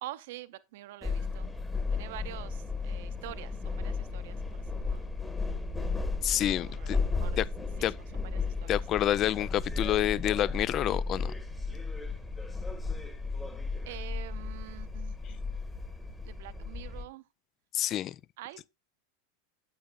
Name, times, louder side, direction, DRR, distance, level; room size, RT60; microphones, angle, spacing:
voice 1, 0.0-1.5 1.9-5.1 6.6-7.4 7.8-9.0 13.9-15.5 16.2-17.3 18.4-18.7, right 15 dB, 65° right, 0.6 m, -46 dB
sound 1, 1.0-17.0, left 4 dB, 10° left, 1.4 m, -34 dB
voice 2, 6.2-7.0 7.4-7.5 7.8-7.9 8.7-11.3 17.7-18.2, left 12 dB, 40° left, 0.3 m, -28 dB
8.6 x 8.4 x 2.4 m
hypercardioid pair, 95°, 0 cm